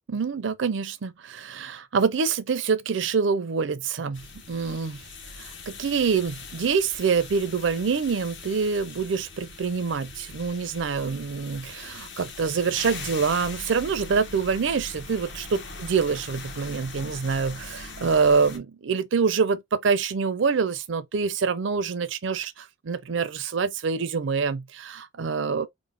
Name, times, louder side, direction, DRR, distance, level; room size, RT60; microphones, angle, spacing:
voice 1, 0.1-5.0 5.4-25.7, right 5 dB, 65° right, 0.5 m, -26 dB
sound 1, 4.1-18.6, left 4 dB, 60° left, 0.9 m, -41 dB
3.7 x 2.1 x 3.3 m
head